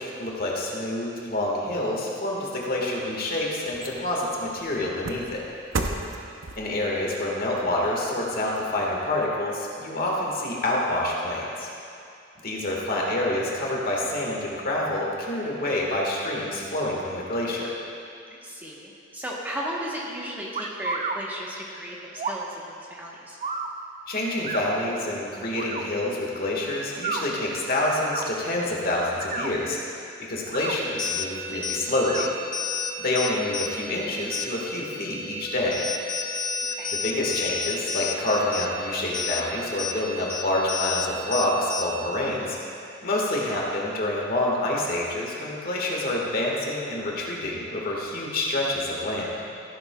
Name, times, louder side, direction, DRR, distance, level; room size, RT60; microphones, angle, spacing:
voice 1, 0.0-5.4 6.5-11.7 12.4-17.7 24.1-29.8 30.3-32.3 33.0-35.8 37.0-42.6 43.0-49.3, left 1 dB, 45° left, -3 dB, 1.6 m, -27 dB
sound 1, 3.0-9.3 9.7-9.8, right 3 dB, 65° right, 0.7 m, -37 dB
voice 2, 18.3-23.4 36.7-37.0, equal, 10° right, -4 dB, 1.1 m, -35 dB
sound 2, 20.5-21.2 22.2-22.5 23.4-23.7 24.4-24.6 25.5-25.8 26.9-27.2 28.0-28.3 29.1-29.5 30.4-30.8 32.0-32.3, right 5 dB, 35° right, 0.4 m, -31 dB
sound 3, 30.6-42.2, left 4 dB, 20° left, 0.5 m, -32 dB
14.5 x 10.5 x 2.3 m, 2.5 s
head